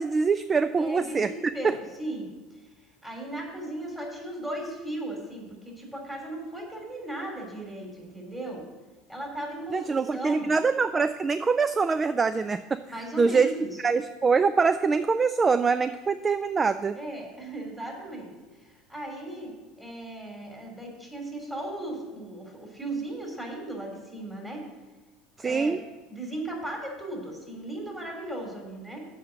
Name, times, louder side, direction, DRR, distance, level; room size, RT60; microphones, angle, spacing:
voice 1, 0.0-1.3 1.6-1.8 9.7-12.8 13.2-13.5 13.8-17.0 25.4-25.8, right 5 dB, 25° right, 12 dB, 0.3 m, -24 dB
voice 2, 0.8-2.3 3.0-8.6 9.1-10.5 12.8-13.8 16.9-18.3 18.6-19.5 19.8-24.6 25.4-25.8 26.1-29.0, right 1 dB, 10° right, -1 dB, 3.3 m, -37 dB
7.4 x 5.6 x 7.6 m, 1.2 s
hypercardioid pair, 80°, 0 cm